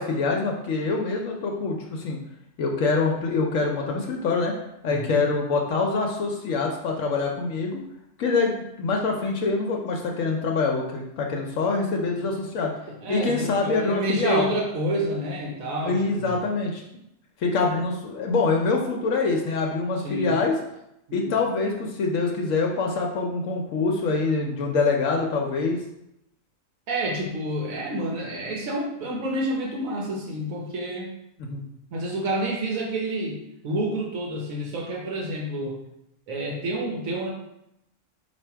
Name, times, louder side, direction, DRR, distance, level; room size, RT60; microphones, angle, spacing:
voice 1, 0.0-2.2 2.6-4.6 4.8-7.8 8.2-12.7 13.1-14.5 15.8-16.8 17.4-20.6 21.1-25.8 31.4-31.6, left 4 dB, 75° left, 0 dB, 1.0 m, -25 dB
voice 2, 4.9-5.2 12.2-12.3 12.9-16.3 20.0-20.4 21.1-21.3 26.9-31.1 31.9-35.8 36.3-37.3, right 1 dB, 90° right, -1 dB, 1.3 m, -29 dB
4.3 x 2.7 x 4.5 m, 0.83 s
omnidirectional pair, 1.4 m